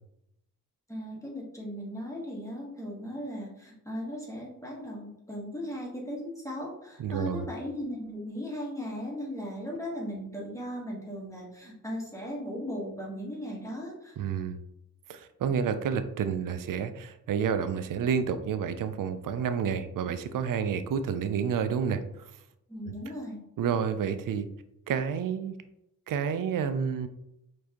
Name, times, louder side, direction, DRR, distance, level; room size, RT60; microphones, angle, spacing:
voice 1, 0.9-14.2 22.7-23.4, equal, 10° left, -4 dB, 1.2 m, -37 dB
voice 2, 7.0-7.5 14.2-14.6 15.1-22.0 23.6-24.5 24.9-25.6 26.1-27.1, right 7 dB, 70° right, 10 dB, 0.5 m, -29 dB
4.5 x 2.6 x 2.9 m, 0.82 s
cardioid pair, 65°, 35 cm